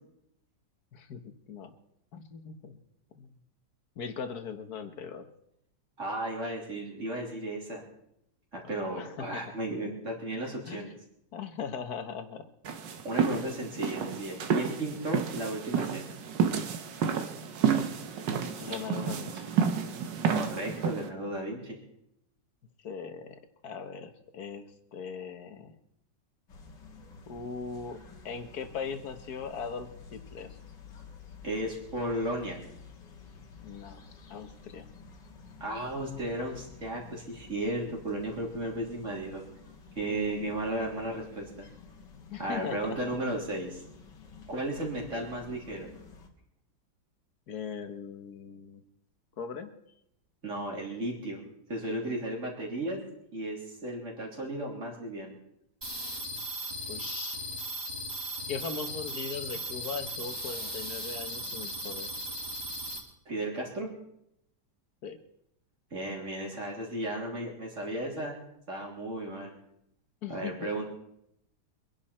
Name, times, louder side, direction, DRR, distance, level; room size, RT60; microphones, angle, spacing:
voice 1, 0.9-1.8 2.1-2.8 3.2-3.3 4.0-5.3 8.6-9.5 10.7-10.9 11.3-12.5 18.6-19.5 22.8-25.8 27.3-28.0 28.3-30.6 33.6-34.0 34.3-34.9 40.1-40.6 42.3-43.0 47.5-48.8 49.4-49.7 56.9-57.4 58.5-62.1 65.0-65.2 70.2-70.5, left 6 dB, 60° left, 8 dB, 1.8 m, -39 dB
voice 2, 6.0-7.8 8.5-10.9 13.0-16.1 20.3-21.8 31.4-32.6 35.6-39.4 40.0-41.7 42.4-43.8 44.5-45.9 50.4-51.4 51.7-53.0 53.3-55.4 63.3-63.9 65.9-68.4 68.7-69.5 70.3-70.8, right 1 dB, 40° right, -1 dB, 3.7 m, -34 dB
sound 1, 12.6-21.1, right 7 dB, 85° right, 1.8 m, -30 dB
sound 2, 26.5-46.3, left 4 dB, 80° left, 2.4 m, -51 dB
sound 3, 55.8-63.0, right 1 dB, 15° right, 3.1 m, -37 dB
24.5 x 11.0 x 4.4 m, 0.77 s
omnidirectional pair, 1.9 m